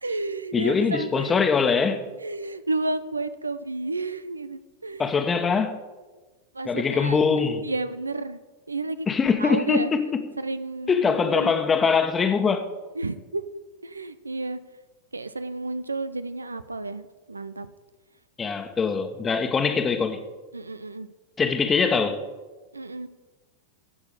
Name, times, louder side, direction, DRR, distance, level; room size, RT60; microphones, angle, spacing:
voice 1, 0.0-1.4 2.2-5.1 6.5-7.2 7.6-8.4 8.7-9.1 9.4-9.9 10.4-11.5 13.0-14.6 15.1-17.7 20.5-21.1 22.7-23.1, right 2 dB, 80° right, 0.6 m, -31 dB
voice 2, 0.5-2.0 5.0-5.8 6.6-7.6 9.1-10.0 10.9-12.7 18.4-20.2 21.4-22.2, left 5 dB, 20° left, 1.3 m, -22 dB
15.0 x 6.3 x 6.9 m
figure-of-eight pair, 90°, 0 cm